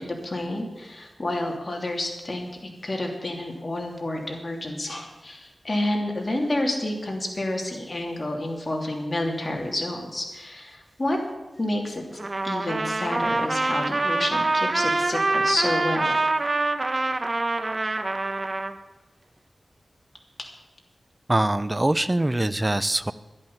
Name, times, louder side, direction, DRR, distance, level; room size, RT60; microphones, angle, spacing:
voice 1, 0.0-2.5 2.8-11.2 11.6-12.0 12.4-16.1, left 1 dB, 35° left, 1 dB, 2.9 m, -29 dB
Trumpet, 12.2-18.7, right 2 dB, 40° right, 1.0 m, -25 dB
voice 2, 21.3-23.1, right 1 dB, 20° right, 15 dB, 0.6 m, -23 dB
11.5 x 11.0 x 7.1 m, 1.1 s
wide cardioid pair, 75°, 0 cm